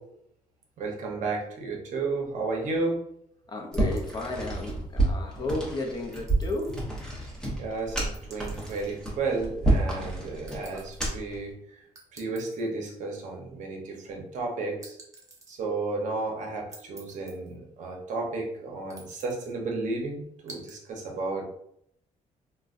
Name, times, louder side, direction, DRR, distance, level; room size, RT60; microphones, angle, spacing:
voice 1, 0.8-3.1 7.6-11.6 12.1-15.0 15.5-21.4, right 3 dB, 65° right, 0 dB, 0.8 m, -32 dB
voice 2, 3.5-6.8, left 2 dB, 30° left, 2 dB, 0.5 m, -33 dB
sound 1, 3.7-11.4, right 2 dB, 5° left, 0.9 m, -29 dB
sound 2, 3.7-4.7 6.1-6.8 8.1-8.9 10.5-11.1 12.0-12.7 14.8-15.6 16.7-17.6 18.9-19.5 20.5-20.8, right 2 dB, 25° right, 0.6 m, -50 dB
3.8 x 2.2 x 2.5 m, 0.73 s
cardioid pair, 150°, 14 cm